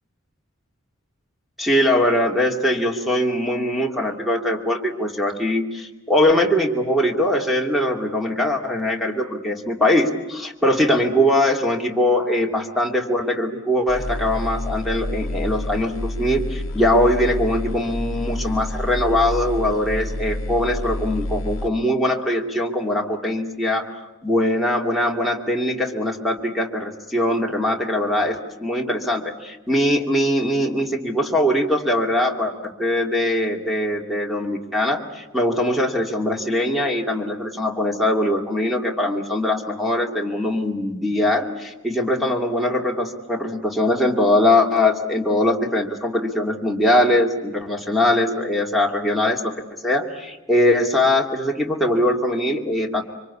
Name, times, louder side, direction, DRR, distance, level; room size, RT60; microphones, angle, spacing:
voice 1, 1.6-49.5 49.8-53.0, left 1 dB, ahead, 2 dB, 2.4 m, -21 dB
sound 1, 13.9-21.7, left 1 dB, 65° left, 0.9 m, -28 dB
26.0 x 25.0 x 8.5 m, 1.1 s
head